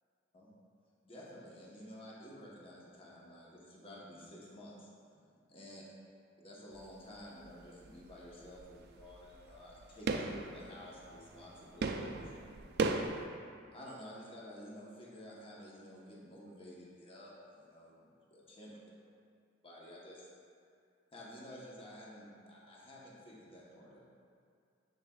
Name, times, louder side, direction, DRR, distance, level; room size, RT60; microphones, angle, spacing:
voice 1, 1.0-4.9 5.3-5.8 6.4-12.5 13.7-18.8 19.6-20.3 21.1-24.0, equal, 30° left, -5 dB, 1.0 m, -52 dB
sound 1, 6.7-7.2 7.4-13.3, right 3 dB, 55° right, 0.4 m, -38 dB
7.0 x 6.5 x 2.3 m, 2.3 s
head